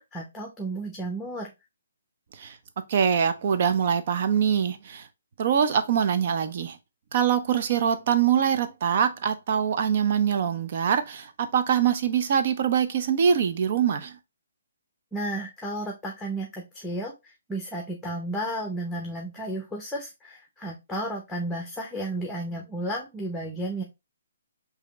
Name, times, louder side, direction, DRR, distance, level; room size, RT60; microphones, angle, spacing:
voice 1, 0.0-1.5 15.1-23.8, right 1 dB, 5° left, 0.8 m, -33 dB
voice 2, 2.9-5.1 5.4-6.8 7.1-14.1, right 8 dB, 50° right, 0.6 m, -24 dB
4.8 x 2.8 x 3.0 m
hypercardioid pair, 140°, 0 cm